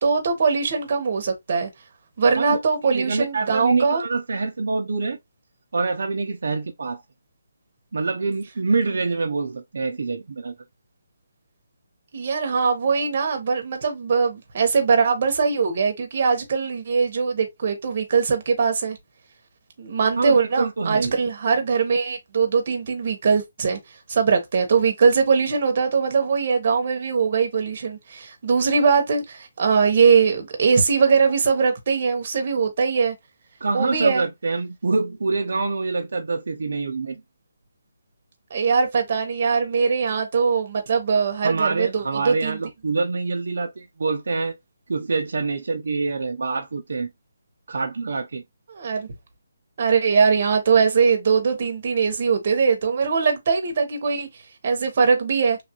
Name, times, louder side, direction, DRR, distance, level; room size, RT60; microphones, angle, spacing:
voice 1, 0.0-1.7 2.2-4.0 12.1-19.0 19.8-23.8 24.1-33.1 33.7-34.2 38.5-42.6 48.7-49.1 49.8-54.3 54.6-55.6, right 5 dB, 40° right, 0.8 m, -21 dB
voice 2, 2.9-5.2 5.7-7.0 7.9-10.5 20.2-21.1 33.6-37.2 41.4-44.6 44.9-47.1 47.7-48.4, right 3 dB, 65° right, 0.4 m, -25 dB
3.1 x 2.3 x 2.8 m
hypercardioid pair, 170°, 0 cm